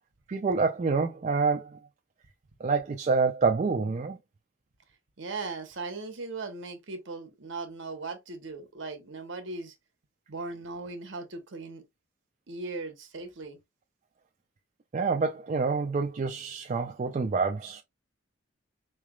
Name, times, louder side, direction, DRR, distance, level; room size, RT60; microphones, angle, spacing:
voice 1, 0.3-1.8 2.6-4.2 14.9-17.8, right 4 dB, 35° right, 0.3 m, -27 dB
voice 2, 5.2-9.7 10.3-11.8 12.5-13.6, right 3 dB, 65° right, 0.9 m, -38 dB
4.0 x 3.2 x 2.2 m
head